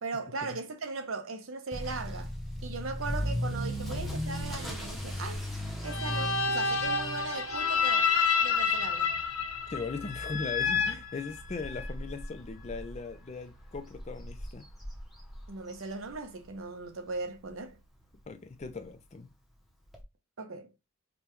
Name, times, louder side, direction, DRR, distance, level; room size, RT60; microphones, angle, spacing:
voice 1, 0.0-2.3 2.6-5.4 5.8-8.1 8.4-9.1 15.5-17.8 20.4-20.7, right 3 dB, 70° right, 0.7 m, -38 dB
Motor vehicle (road) / Accelerating revving vroom, 1.7-16.6 16.9-17.2 17.8-17.9 18.2-18.3 18.5-18.6 19.9-20.0, equal, ahead, 0.7 m, -38 dB
sound 1, 5.9-11.9, left 5 dB, 85° left, 0.6 m, -29 dB
voice 2, 9.7-14.7 18.3-19.3, left 4 dB, 30° left, 0.4 m, -39 dB
5.2 x 2.2 x 3.0 m
head